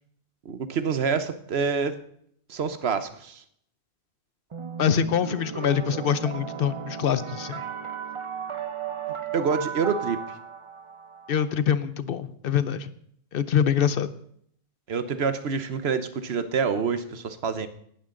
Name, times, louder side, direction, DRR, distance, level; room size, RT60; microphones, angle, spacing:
voice 1, 0.4-2.0 2.5-3.4 9.3-10.4 14.9-17.7, right 5 dB, 70° right, 11 dB, 1.2 m, -27 dB
sound 1, 4.5-11.5, right 7 dB, 35° right, 0.6 m, -35 dB
voice 2, 4.8-7.6 11.3-12.9 13.3-14.1, left 8 dB, 60° left, 14 dB, 0.9 m, -24 dB
17.5 x 12.5 x 3.8 m, 0.68 s
omnidirectional pair, 1.1 m